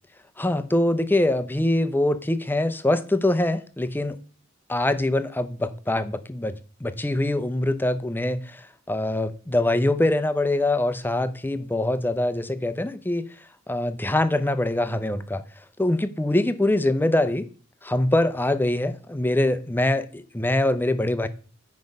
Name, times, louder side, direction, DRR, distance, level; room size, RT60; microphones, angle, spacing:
voice 1, 0.4-4.2 4.7-6.6 6.8-8.6 8.9-13.3 13.7-15.4 15.8-17.5 17.8-21.3, left 1 dB, 10° left, 0.6 m, -23 dB
9.9 x 5.3 x 5.3 m
head